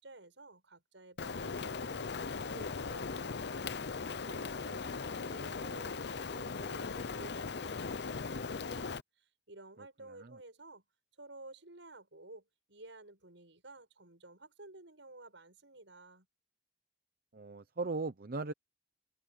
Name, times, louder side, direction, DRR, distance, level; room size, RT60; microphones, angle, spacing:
voice 1, 0.0-10.8 11.2-16.3, right 2 dB, 80° right, 6.8 m, -53 dB
Rain, 1.2-9.0, left 4 dB, 60° left, 0.7 m, -39 dB
voice 2, 10.1-10.4 17.3-18.5, right 3 dB, 50° right, 0.8 m, -38 dB
head